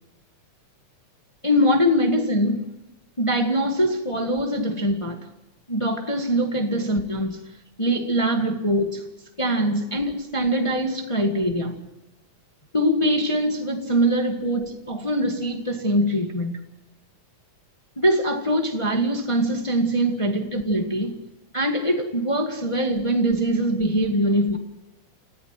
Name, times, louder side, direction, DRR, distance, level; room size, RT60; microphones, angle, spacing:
voice 1, 1.4-2.7 3.2-5.3 5.7-7.4 7.8-9.1 9.4-11.7 12.7-16.6 18.0-21.2 21.5-24.6, equal, 15° left, 1.0 m, -23 dB
29.5 x 15.0 x 6.0 m
omnidirectional pair, 3.6 m